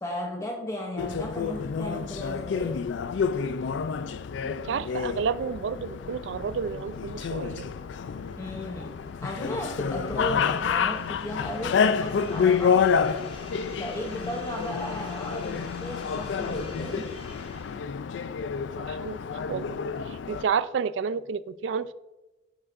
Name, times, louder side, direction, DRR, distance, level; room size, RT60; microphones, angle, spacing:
voice 1, 0.0-2.8 8.4-9.0 9.2-12.9 13.8-17.1, left 1 dB, 15° left, 0.7 m, -35 dB
sound 1, 1.0-20.4, left 6 dB, 75° left, 0.4 m, -29 dB
voice 2, 4.4-7.7 18.8-19.8 20.1-21.9, right 6 dB, 80° right, 0.4 m, -31 dB
sound 2, 6.3-18.1, left 1 dB, 30° left, 1.5 m, -49 dB
10.5 x 6.2 x 2.5 m
head